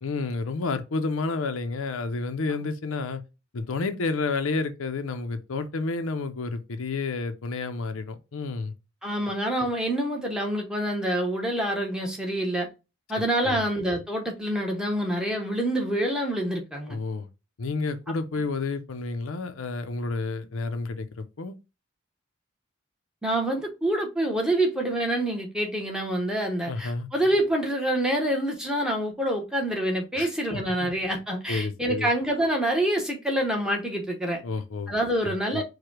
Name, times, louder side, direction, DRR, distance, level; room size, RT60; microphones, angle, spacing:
voice 1, 0.0-3.2 3.5-8.7 13.4-13.6 16.9-17.3 17.6-21.5 26.7-27.1 30.2-30.9 31.5-32.1 34.4-34.9 35.5-35.6, left 3 dB, 80° left, 0.6 m, -30 dB
voice 2, 9.0-12.7 13.1-17.0 23.2-34.4 34.9-35.6, right 1 dB, 5° right, 0.8 m, -26 dB
4.7 x 2.2 x 4.5 m
head